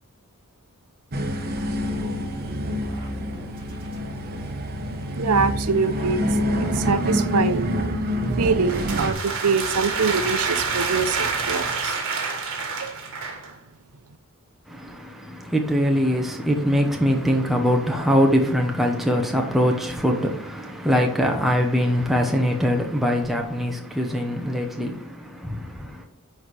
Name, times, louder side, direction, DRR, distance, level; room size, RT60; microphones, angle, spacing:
sound 1, 1.1-9.1, equal, 45° right, 1.1 m, -26 dB
sound 2, 1.6-11.8, left 1 dB, 25° right, 2.5 m, -43 dB
voice 1, 5.1-6.2 6.5-12.0 12.8-12.9, right 4 dB, 80° right, 0.7 m, -25 dB
sound 3, 8.4-13.5, right 5 dB, 60° right, 1.8 m, -28 dB
voice 2, 14.7-26.0, equal, ahead, 1.0 m, -22 dB
10.0 x 4.3 x 4.8 m
head